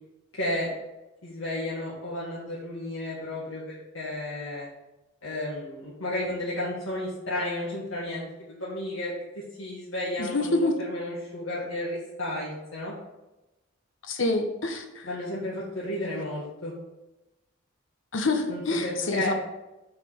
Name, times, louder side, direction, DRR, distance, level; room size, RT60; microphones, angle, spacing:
voice 1, 0.3-0.7 1.2-4.7 5.2-12.9 15.0-16.7 18.5-19.3, left 1 dB, 90° left, -7 dB, 1.7 m, -33 dB
voice 2, 10.2-10.7 14.0-15.1 18.1-19.3, left 2 dB, 70° left, 5 dB, 1.0 m, -27 dB
6.6 x 5.0 x 4.9 m, 1.0 s
head